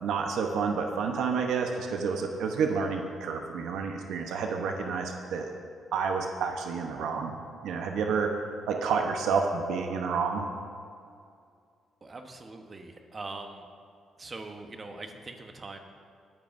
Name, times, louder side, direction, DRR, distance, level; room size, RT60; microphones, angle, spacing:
voice 1, 0.0-5.5 5.9-7.4 7.6-8.3 8.7-10.5, right 5 dB, 80° right, 3 dB, 0.9 m, -29 dB
voice 2, 12.0-13.7 14.2-15.8, right 3 dB, 30° right, 4 dB, 1.0 m, -42 dB
22.5 x 8.9 x 2.6 m, 2.3 s
cardioid pair, 90°, 0 cm